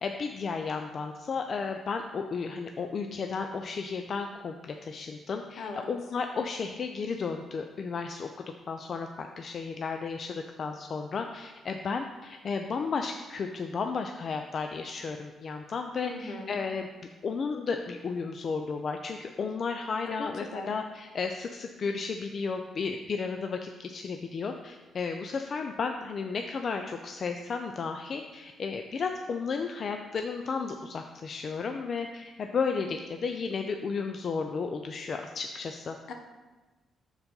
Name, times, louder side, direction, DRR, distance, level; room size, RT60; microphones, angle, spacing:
voice 1, 0.0-8.3 8.7-16.9 17.2-36.0, left 5 dB, 50° left, 5 dB, 0.4 m, -33 dB
voice 2, 16.0-16.6 20.0-20.7 36.1-36.2, left 3 dB, 75° left, 4 dB, 1.0 m, -39 dB
6.9 x 4.1 x 5.3 m, 1.2 s
cardioid pair, 90°, 0 cm